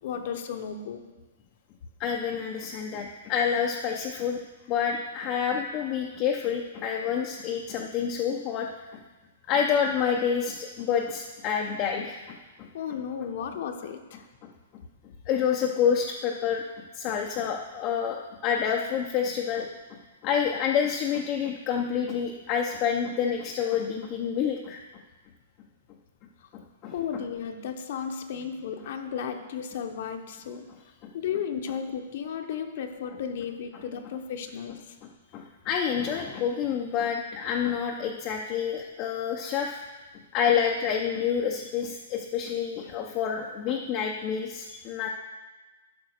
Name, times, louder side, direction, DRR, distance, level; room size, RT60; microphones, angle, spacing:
voice 1, 0.0-1.0 12.7-14.2 26.4-26.5 26.9-30.7 31.1-34.9, left 7 dB, 50° left, 6 dB, 0.9 m, -34 dB
voice 2, 2.0-4.4 4.7-9.0 9.5-12.7 14.4-14.8 15.3-24.8 26.5-26.9 31.0-31.1 35.3-39.8 40.3-45.1, left 7 dB, 25° left, 1 dB, 0.6 m, -28 dB
11.5 x 5.2 x 6.5 m, 1.2 s
hypercardioid pair, 170°, 0 cm